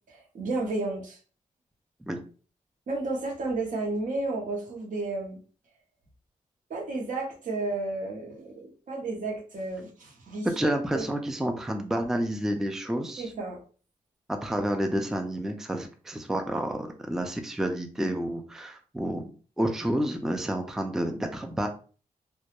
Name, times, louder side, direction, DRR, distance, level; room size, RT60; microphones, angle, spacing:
voice 1, 0.1-1.2 2.9-5.4 6.7-11.1 13.2-13.6, right 2 dB, 65° right, 0 dB, 0.8 m, -32 dB
voice 2, 10.4-13.3 14.4-19.3 19.6-21.7, right 1 dB, 5° right, 5 dB, 0.3 m, -29 dB
2.2 x 2.1 x 2.9 m, 0.39 s
cardioid pair, 90°, 14 cm